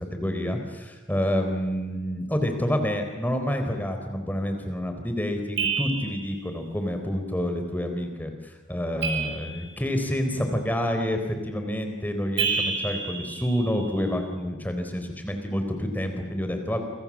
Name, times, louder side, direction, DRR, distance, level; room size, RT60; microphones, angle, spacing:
voice 1, 0.1-16.8, equal, 10° left, 5 dB, 4.0 m, -28 dB
sound 1, 5.6-6.4 9.0-10.0 12.4-14.0, right 5 dB, 75° right, 8.0 m, -29 dB
29.0 x 25.0 x 7.5 m, 1.3 s
head